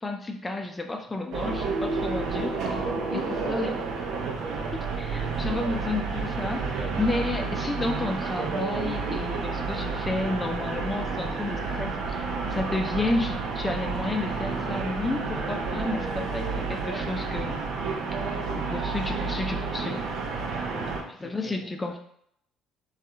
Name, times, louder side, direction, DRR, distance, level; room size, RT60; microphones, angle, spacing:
voice 1, 0.0-2.5 3.1-3.7 4.7-12.2 12.5-17.6 18.2-18.3 18.5-20.1 21.1-22.0, left 2 dB, 20° left, 4 dB, 0.4 m, -31 dB
sound 1, 1.3-21.0, right 4 dB, 70° right, 0.4 m, -30 dB
voice 2, 2.1-3.7 20.7-21.7, left 4 dB, 80° left, -3 dB, 0.4 m, -41 dB
2.7 x 2.4 x 2.2 m, 0.69 s
hypercardioid pair, 60°, 0 cm